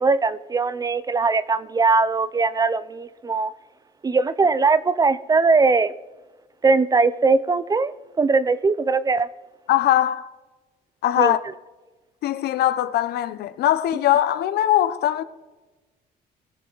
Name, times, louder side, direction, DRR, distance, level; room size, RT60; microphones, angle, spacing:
voice 1, 0.0-3.5 4.0-5.9 6.6-9.3 11.2-11.3, right 4 dB, 20° right, 0.5 m, -20 dB
voice 2, 9.7-10.3 11.0-11.4 12.2-15.2, left 12 dB, 70° left, 0.8 m, -21 dB
20.0 x 6.8 x 3.9 m
cardioid pair, 110°, 17 cm